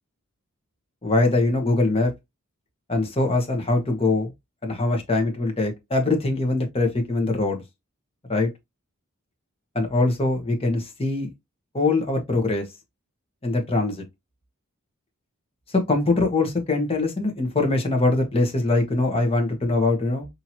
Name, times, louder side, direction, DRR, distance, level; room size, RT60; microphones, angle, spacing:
voice 1, 1.0-2.1 2.9-4.3 4.6-7.6 8.3-8.5 9.7-11.3 11.7-12.7 13.4-14.0 15.7-20.3, left 2 dB, 25° left, 1.0 m, -22 dB
4.4 x 2.8 x 2.7 m
head